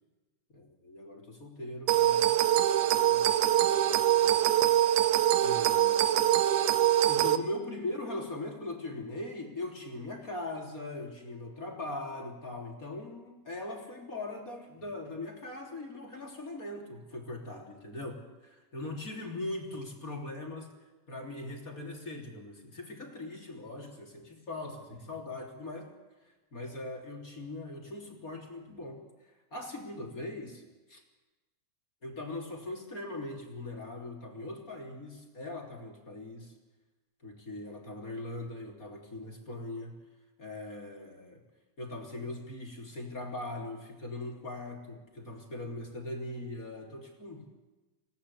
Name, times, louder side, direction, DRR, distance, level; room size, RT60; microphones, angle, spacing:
voice 1, 0.5-2.6 2.9-4.5 5.4-6.3 7.0-20.7 21.1-25.9 26.2-29.0 29.5-30.6 30.9-31.0 32.0-36.5 37.2-40.0 40.4-41.4 41.8-47.5, left 2 dB, 25° left, 1 dB, 3.4 m, -40 dB
sound 1, 1.9-7.4, right 11 dB, 70° right, 2.1 m, -24 dB
27.5 x 18.0 x 8.4 m, 1.2 s
omnidirectional pair, 4.2 m